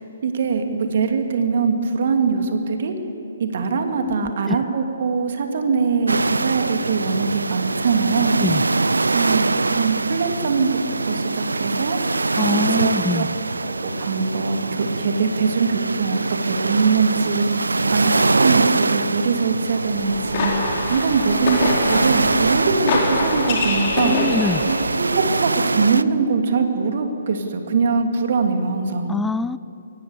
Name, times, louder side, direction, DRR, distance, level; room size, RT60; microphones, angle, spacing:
voice 1, 0.2-2.9 3.4-8.4 9.1-10.8 11.0-13.2 13.6-13.7 14.0-24.2 24.6-29.2, right 5 dB, 50° right, 5 dB, 2.6 m, -22 dB
voice 2, 4.0-4.6 8.4-8.6 12.4-13.3 24.0-24.6 29.1-29.6, left 3 dB, 5° left, 15 dB, 0.4 m, -24 dB
sound 1, 6.1-26.0, right 3 dB, 75° right, 0.6 m, -23 dB
sound 2, 19.9-25.0, left 3 dB, 40° left, 4.7 m, -25 dB
23.5 x 18.0 x 8.2 m, 2.7 s
figure-of-eight pair, 130°, 0 cm